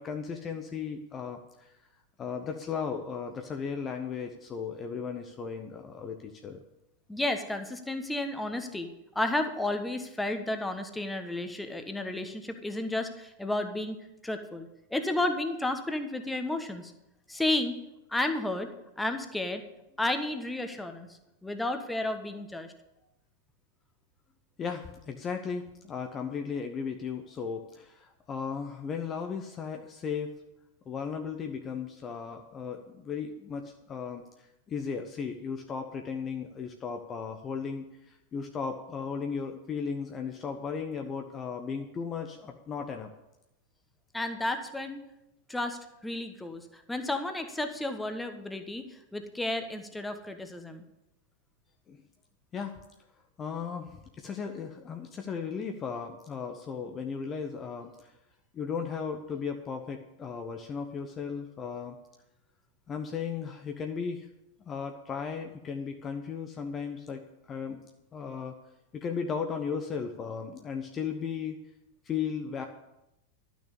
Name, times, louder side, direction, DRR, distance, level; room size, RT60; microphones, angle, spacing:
voice 1, 0.0-1.8 2.2-6.6 24.6-30.4 30.9-43.1 51.9-52.0 52.5-52.8 53.4-58.1 58.5-62.0 62.9-64.3 64.7-67.8 68.1-68.6 68.9-71.6 72.0-72.7, left 6 dB, 25° left, 4 dB, 0.9 m, -36 dB
voice 2, 7.1-8.9 9.1-16.9 17.3-17.8 18.1-18.7 19.0-19.6 20.0-21.1 21.4-22.7 44.1-45.1 45.5-50.8, left 2 dB, 5° left, 7 dB, 1.2 m, -32 dB
12.0 x 6.2 x 8.2 m, 0.91 s
figure-of-eight pair, 90°, 0 cm